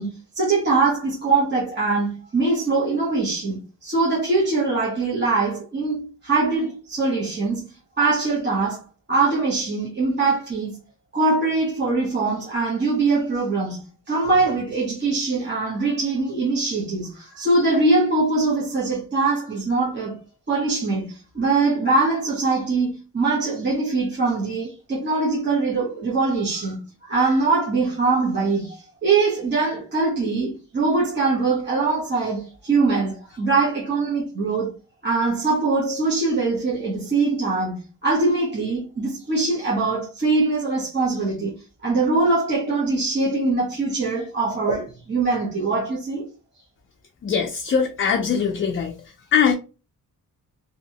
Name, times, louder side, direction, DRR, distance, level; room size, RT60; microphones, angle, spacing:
voice 1, 0.0-8.8 9.1-10.8 11.1-13.8 14.1-20.2 20.5-34.7 35.0-41.5 41.8-46.2, right 3 dB, 30° right, 1.0 m, -22 dB
voice 2, 47.2-48.9 49.3-49.5, left 7 dB, 35° left, 0.4 m, -21 dB
3.0 x 2.8 x 2.8 m
wide cardioid pair, 175°, 35 cm